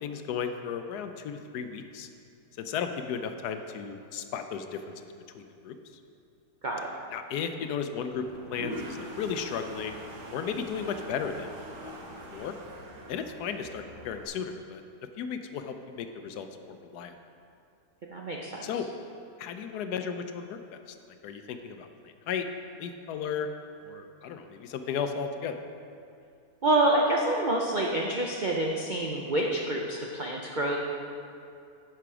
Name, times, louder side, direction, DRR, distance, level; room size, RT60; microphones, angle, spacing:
voice 1, 0.0-2.1 2.6-5.8 7.1-8.3 8.5-10.0 10.3-12.0 12.3-12.5 13.1-14.8 15.2-17.2 18.6-18.9 19.4-21.0 21.2-22.5 22.8-23.5 23.8-25.6, left 7 dB, 75° left, 7 dB, 1.1 m, -35 dB
Toilet flush, 8.1-14.3, right 1 dB, 50° right, 1.5 m, -43 dB
voice 2, 18.1-18.7 26.6-30.8, right 1 dB, 80° right, -1 dB, 0.4 m, -27 dB
10.0 x 6.0 x 4.9 m, 2.5 s
omnidirectional pair, 1.8 m